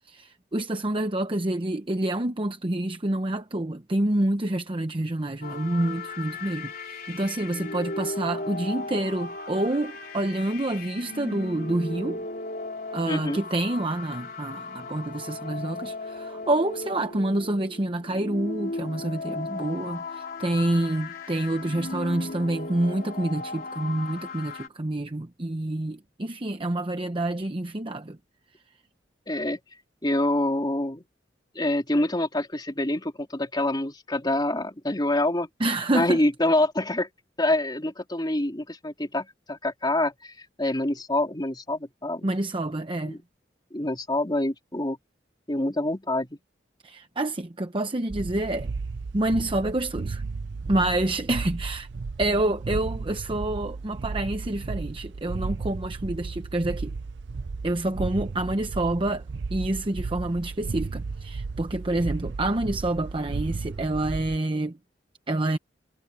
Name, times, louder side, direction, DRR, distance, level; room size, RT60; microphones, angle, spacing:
voice 1, 0.0-12.2 12.9-28.2 35.6-36.2 42.2-43.2 46.8-48.7 49.1-50.2 50.7-51.9 52.2-56.9 57.6-64.8 65.3-65.6, right 1 dB, 30° right, 0.9 m, -28 dB
sound 1, 5.4-24.7, left 3 dB, 50° left, 3.3 m, -37 dB
voice 2, 13.1-13.4 29.3-29.6 30.0-31.0 31.5-35.5 35.9-37.1 37.4-42.3 43.0-43.2 43.7-45.0 45.5-46.4, left 1 dB, 25° left, 3.0 m, -26 dB
sound 2, 48.1-64.4, right 4 dB, 70° right, 0.5 m, -34 dB
head